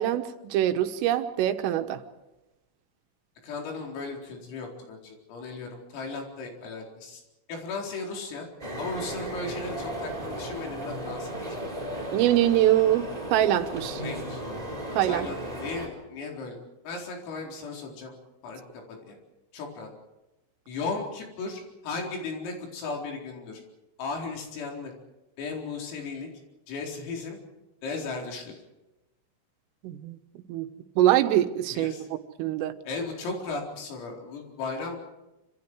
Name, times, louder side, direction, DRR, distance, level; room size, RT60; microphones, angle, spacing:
voice 1, 0.0-2.0 12.1-14.0 15.0-15.3 29.8-30.2 30.5-30.7 31.0-31.9 32.4-32.7, right 13 dB, 80° right, 8 dB, 3.8 m, -24 dB
voice 2, 3.4-7.2 7.5-8.5 8.8-11.6 14.0-14.4 14.9-16.6 16.9-18.2 18.4-19.2 19.5-19.9 20.7-23.6 24.0-24.9 25.4-26.3 26.7-27.4 27.8-28.5 31.7-32.1 32.9-35.0, left 3 dB, 90° left, 1 dB, 7.0 m, -36 dB
sound 1, 8.6-15.9, right 1 dB, 5° right, 5.2 m, -35 dB
27.0 x 26.5 x 4.8 m, 0.99 s
omnidirectional pair, 5.9 m